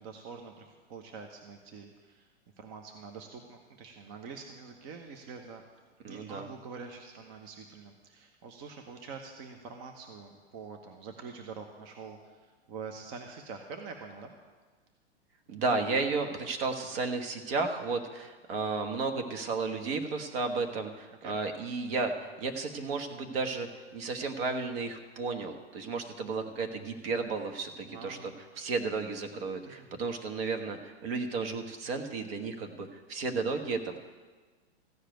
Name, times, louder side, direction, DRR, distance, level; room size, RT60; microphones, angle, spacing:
voice 1, 0.0-2.3 2.6-5.6 6.0-14.3 16.2-16.3 21.2-21.4 27.8-28.6 29.8-29.9, right 5 dB, 40° right, 5 dB, 1.2 m, -46 dB
voice 2, 6.0-6.5 15.5-23.7 23.9-28.3 28.6-34.0, right 4 dB, 60° right, 6 dB, 1.5 m, -33 dB
14.5 x 5.0 x 9.2 m, 1.4 s
hypercardioid pair, 125°, 33 cm